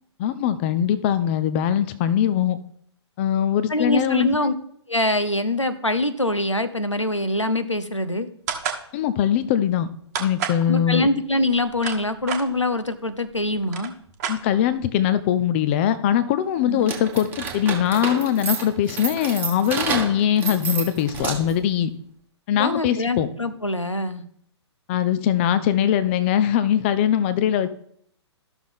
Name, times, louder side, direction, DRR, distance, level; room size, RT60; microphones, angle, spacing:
voice 1, 0.2-2.6 3.2-4.5 8.9-9.9 10.2-11.1 14.3-21.9 22.5-23.3 24.9-27.7, left 10 dB, 25° left, 13 dB, 0.4 m, -21 dB
voice 2, 3.7-4.5 4.9-8.3 10.7-13.9 16.6-16.9 22.6-24.2, left 1 dB, 90° left, 11 dB, 0.8 m, -24 dB
sound 1, 8.5-8.8 10.1-10.6 11.5-12.4 13.3-13.4 13.6-14.8, right 8 dB, 35° right, 1.1 m, -29 dB
sound 2, 16.8-21.7, right 5 dB, 15° right, 1.1 m, -29 dB
12.5 x 6.2 x 3.6 m, 0.67 s
figure-of-eight pair, 125°, 15 cm